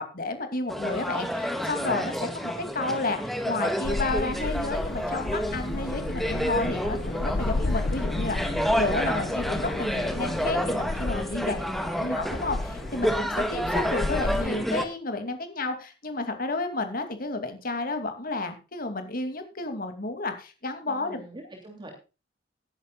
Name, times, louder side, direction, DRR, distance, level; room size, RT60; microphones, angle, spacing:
voice 1, 0.0-8.4 8.7-11.7 12.0-21.2, left 2 dB, 55° left, 7 dB, 2.6 m, -31 dB
sound 1, 0.7-14.9, equal, ahead, 1.6 m, -30 dB
sound 2, 3.8-14.5, left 2 dB, 80° left, 0.7 m, -33 dB
voice 2, 11.3-12.1 20.9-21.9, right 1 dB, 25° right, 2 dB, 2.9 m, -46 dB
19.0 x 11.0 x 2.4 m, 0.31 s
head